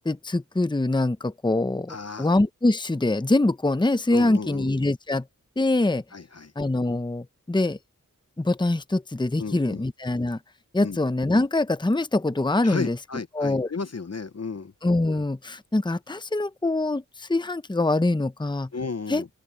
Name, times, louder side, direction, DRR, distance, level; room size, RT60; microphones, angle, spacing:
voice 1, 0.0-5.3 5.6-6.0 6.6-7.8 8.4-10.4 10.7-13.0 13.3-13.7 14.8-18.7 19.1-19.2, left 2 dB, 15° left, 0.8 m, -24 dB
voice 2, 1.9-2.3 4.1-4.7 6.1-6.5 9.4-9.8 10.8-11.0 12.6-14.7 18.7-19.3, left 4 dB, 50° left, 0.8 m, -33 dB
open air
wide cardioid pair, 50°, 33 cm